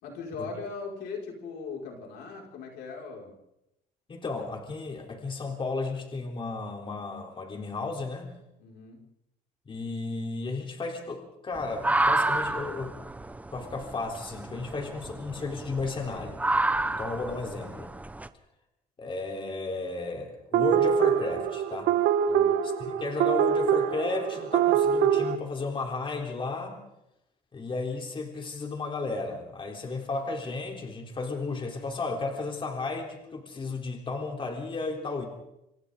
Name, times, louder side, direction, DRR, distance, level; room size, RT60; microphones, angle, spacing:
voice 1, 0.0-3.3 8.6-9.0 22.3-22.6, left 4 dB, 85° left, 0 dB, 5.8 m, -39 dB
voice 2, 4.1-8.3 9.7-13.0 13.5-16.4 16.8-17.9 19.0-21.9 22.8-26.8 27.5-35.3, left 3 dB, 30° left, 2 dB, 3.7 m, -34 dB
sound 1, 11.5-18.3, right 2 dB, 10° right, 0.9 m, -30 dB
sound 2, 20.5-25.4, right 9 dB, 80° right, 1.6 m, -24 dB
27.0 x 26.0 x 3.9 m, 0.84 s
cardioid pair, 110°, 17 cm